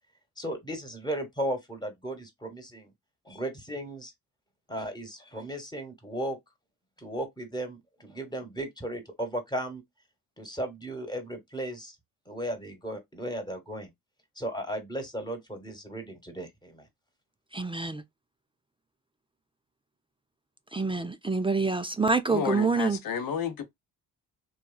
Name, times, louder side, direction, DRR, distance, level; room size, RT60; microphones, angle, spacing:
voice 1, 0.4-2.9 3.2-4.1 4.7-6.4 7.0-9.8 10.4-12.0 12.3-13.9 14.3-16.9, right 1 dB, 10° left, 1.3 m, -35 dB
voice 2, 17.5-18.0 20.7-23.0, right 4 dB, 15° right, 0.4 m, -26 dB
voice 3, 22.3-23.6, left 7 dB, 60° left, 0.9 m, -31 dB
2.9 x 2.4 x 2.3 m
supercardioid pair, 65°, 39 cm